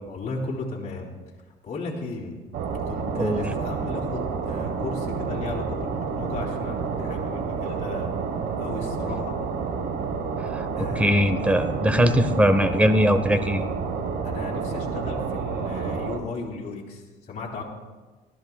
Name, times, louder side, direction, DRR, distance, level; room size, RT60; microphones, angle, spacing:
voice 1, 0.1-1.1 1.6-2.4 2.9-8.1 8.6-9.4 10.7-11.2 14.2-17.6, left 3 dB, 45° left, -4 dB, 2.9 m, -35 dB
sound 1, 2.5-16.2, right 5 dB, 75° right, 1.2 m, -29 dB
voice 2, 10.5-13.6, equal, 10° right, 9 dB, 0.9 m, -21 dB
18.5 x 13.5 x 2.3 m, 1.3 s
cardioid pair, 110°, 17 cm